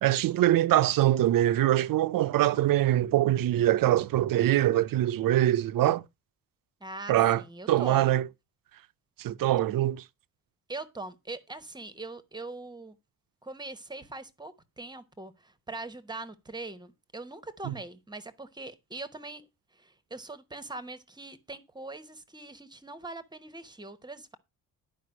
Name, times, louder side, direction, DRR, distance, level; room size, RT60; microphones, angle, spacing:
voice 1, 0.0-6.0 7.1-7.4 7.7-8.3 9.2-10.0 17.7-17.8, right 13 dB, 60° right, 0.6 m, -23 dB
voice 2, 6.8-8.1 10.7-13.0 13.4-19.5 19.7-24.4, right 2 dB, 10° right, 0.9 m, -42 dB
11.0 x 5.2 x 6.3 m
cardioid pair, 165°, 38 cm